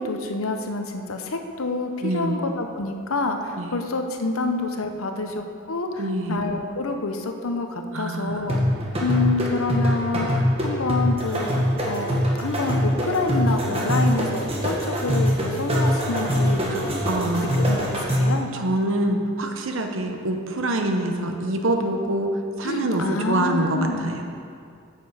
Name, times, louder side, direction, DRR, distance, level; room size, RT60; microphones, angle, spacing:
voice 1, 0.0-8.6 9.0-11.5 11.8-18.5 22.6-24.1, left 3 dB, 80° left, 5 dB, 0.8 m, -28 dB
voice 2, 2.0-2.4 3.6-3.7 6.0-6.4 7.9-8.5 16.7-16.8 17.1-17.6 18.5-22.3 22.6-24.2, right 1 dB, 70° right, 4 dB, 0.9 m, -25 dB
sound 1, 8.5-18.4, equal, 25° right, 1.4 m, -23 dB
9.3 x 7.7 x 4.9 m, 2.3 s
head